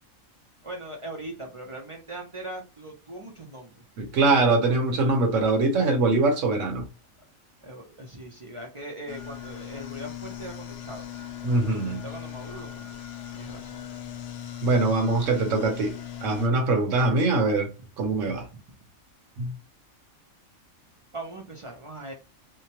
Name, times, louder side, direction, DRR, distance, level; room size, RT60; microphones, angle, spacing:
voice 1, 0.6-3.8 7.6-11.2 11.8-13.0 13.3-13.8 21.1-22.1, right 1 dB, 35° right, 0.5 m, -40 dB
voice 2, 4.0-6.9 11.4-12.0 14.6-15.9 16.2-17.7 18.0-18.5 19.4-19.5, right 3 dB, 70° right, 1.2 m, -23 dB
sound 1, 9.1-16.5, left 10 dB, 65° left, 0.7 m, -39 dB
2.9 x 2.2 x 2.8 m
omnidirectional pair, 1.4 m